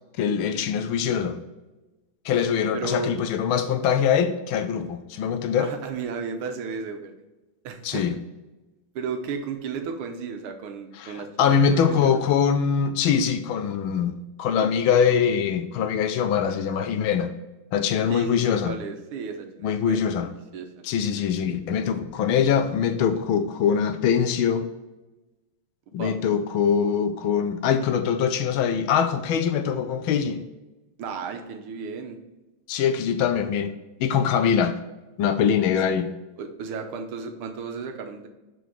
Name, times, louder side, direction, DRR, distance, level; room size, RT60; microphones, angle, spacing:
voice 1, 0.2-1.4 2.2-5.7 7.8-8.1 11.0-17.3 17.7-18.8 19.6-20.3 20.8-24.7 25.9-30.4 32.7-33.7 34.0-34.7 35.2-36.1, left 7 dB, 75° left, 1.4 m, -23 dB
voice 2, 2.7-3.2 5.5-7.1 7.6-8.1 9.0-12.2 18.1-20.0 20.5-20.7 26.0-26.1 31.0-32.2 36.4-38.3, right 5 dB, 80° right, 1.7 m, -34 dB
6.3 x 5.0 x 4.7 m
omnidirectional pair, 2.4 m